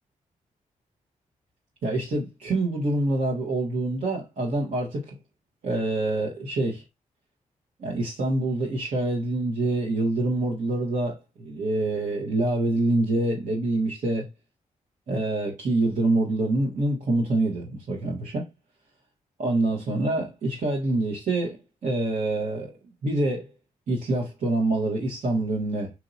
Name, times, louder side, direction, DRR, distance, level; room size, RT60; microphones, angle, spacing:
voice 1, 1.8-5.2 5.6-6.8 7.8-14.3 15.1-18.4 19.4-22.7 23.0-23.5 23.9-25.9, right 2 dB, 65° right, 1.2 m, -26 dB
4.4 x 2.7 x 2.6 m
cardioid pair, 55°, 15 cm